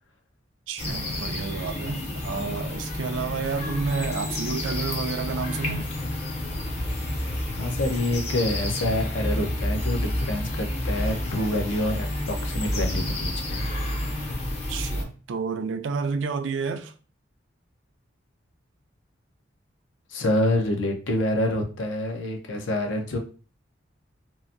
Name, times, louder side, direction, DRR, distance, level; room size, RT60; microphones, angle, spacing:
voice 1, 0.7-6.0 14.7-16.9, right 5 dB, 75° right, 0.4 m, -30 dB
sound 1, 0.8-15.0, left 1 dB, 35° left, 0.5 m, -29 dB
voice 2, 7.5-13.7 20.1-23.2, left 1 dB, 80° left, 0.6 m, -27 dB
2.8 x 2.5 x 2.4 m
head